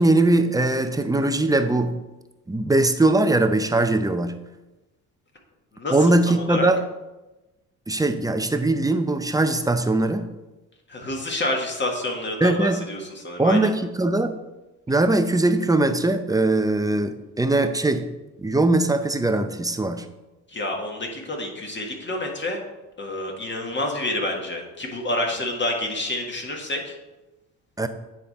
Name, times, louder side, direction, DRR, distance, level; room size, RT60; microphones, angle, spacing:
voice 1, 0.0-1.9 2.5-4.4 5.9-6.8 7.9-10.3 12.4-12.8 13.4-14.4 14.9-18.1 18.4-20.0 27.8-27.9, right 2 dB, 10° right, 8 dB, 0.6 m, -21 dB
voice 2, 5.7-6.7 10.9-13.7 20.5-22.6 23.0-27.0, left 1 dB, 30° left, 1 dB, 1.7 m, -28 dB
9.4 x 3.7 x 4.2 m, 1.1 s
supercardioid pair, 70°, 36 cm